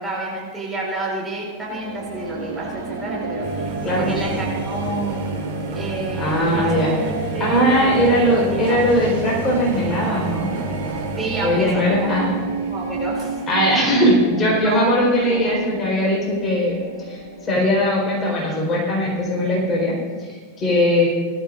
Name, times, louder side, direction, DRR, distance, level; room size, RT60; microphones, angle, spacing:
voice 1, 0.0-5.3 5.7-8.8 11.2-13.4 13.7-13.9 14.6-15.6, right 2 dB, 15° right, -4 dB, 4.7 m, -29 dB
sound 1, 1.6-19.8, right 3 dB, 70° right, 2.8 m, -32 dB
sound 2, 3.4-13.3, right 3 dB, 40° right, 2.0 m, -31 dB
voice 2, 6.1-6.9 7.4-10.6 11.4-12.4 13.5-16.8 17.1-21.1, equal, 25° left, -3 dB, 4.4 m, -20 dB
19.5 x 14.0 x 2.6 m, 1.5 s
figure-of-eight pair, 90°, 0 cm